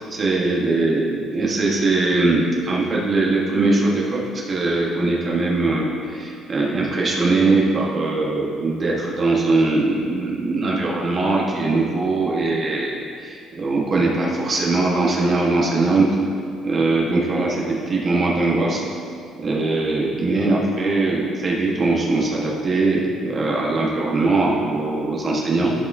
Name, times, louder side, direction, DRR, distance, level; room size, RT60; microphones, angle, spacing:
voice 1, 0.0-4.2 4.5-12.9 13.2-16.1 16.6-18.8 19.4-25.7, right 3 dB, 35° right, -3 dB, 1.1 m, -21 dB
11.5 x 4.8 x 2.6 m, 2.4 s
cardioid pair, 115°, 0 cm